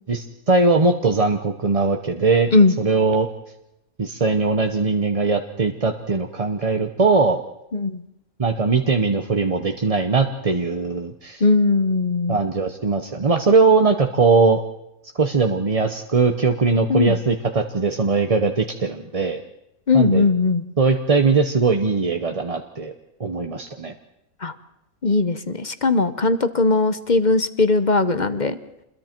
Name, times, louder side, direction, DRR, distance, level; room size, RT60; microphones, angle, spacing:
voice 1, 0.1-2.5 2.8-3.3 4.0-7.4 8.4-11.4 12.3-14.6 15.2-19.4 19.9-20.2 20.8-22.9 23.2-23.9, right 4 dB, 30° right, 5 dB, 0.8 m, -20 dB
voice 2, 7.7-8.0 11.4-12.4 16.9-17.2 19.9-20.6 24.4-24.5 25.0-28.6, left 3 dB, 35° left, 11 dB, 0.9 m, -19 dB
27.5 x 22.0 x 4.5 m, 0.86 s
omnidirectional pair, 1.5 m